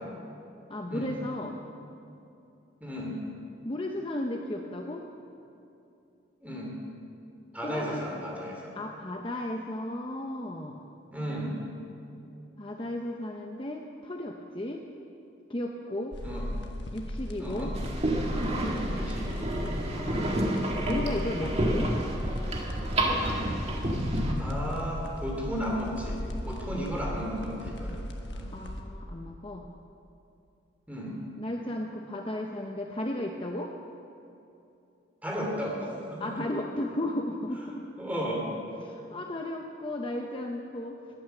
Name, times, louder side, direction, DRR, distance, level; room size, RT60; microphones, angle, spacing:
voice 1, 0.7-1.6 3.6-5.0 7.6-8.0 8.8-10.8 12.6-14.8 15.5-16.2 16.9-17.7 20.0-20.4 20.9-21.9 28.5-29.7 31.4-33.7 36.2-37.9 38.8-41.0, left 1 dB, 25° left, 2 dB, 0.7 m, -34 dB
voice 2, 2.8-3.2 6.4-6.7 7.5-8.7 11.1-11.6 16.2-16.5 17.4-17.7 18.9-19.5 24.4-26.2 26.4-28.0 28.3-28.5 30.9-31.1 35.2-36.3 38.0-38.4, equal, 5° right, -2 dB, 2.8 m, -34 dB
sound 1, 16.1-28.8, left 1 dB, 55° left, 1.4 m, -36 dB
sound 2, 17.7-24.3, right 1 dB, 30° right, 1.7 m, -30 dB
20.0 x 9.3 x 6.9 m, 2.8 s
head